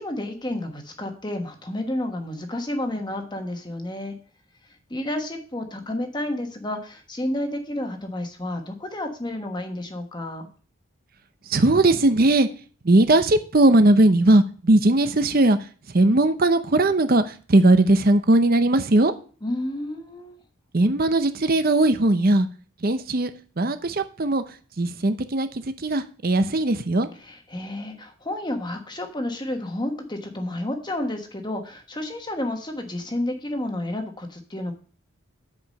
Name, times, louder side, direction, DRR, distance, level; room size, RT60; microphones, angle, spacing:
voice 1, 0.0-4.1 4.9-10.5 19.4-20.4 27.2-34.7, left 1 dB, 20° left, 1.3 m, -30 dB
voice 2, 11.5-12.5 12.8-15.6 15.9-19.1 20.7-22.5 22.8-23.3 23.6-24.4 24.8-27.1, right 2 dB, 45° right, 0.7 m, -19 dB
8.4 x 5.0 x 6.5 m
head